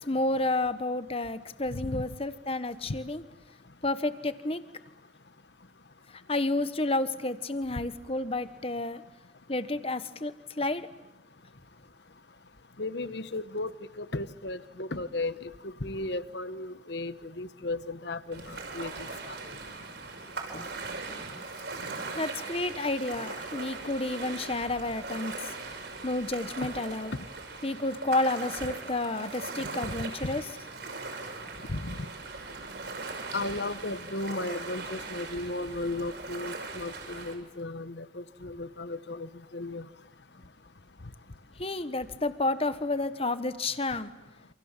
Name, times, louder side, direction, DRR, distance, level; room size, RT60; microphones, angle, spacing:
voice 1, 0.1-3.2 3.8-4.6 6.1-9.0 9.5-10.9 20.5-20.7 22.1-25.5 26.0-27.1 27.6-30.4 41.6-44.1, left 2 dB, 30° left, 12 dB, 1.3 m, -30 dB
voice 2, 1.7-2.0 12.8-13.7 14.0-19.6 31.7-32.1 33.3-39.8, left 2 dB, 60° left, 13 dB, 1.2 m, -35 dB
Ocean, 18.3-37.3, right 3 dB, 60° right, 6.1 m, -40 dB
28.5 x 28.0 x 7.5 m, 0.94 s
head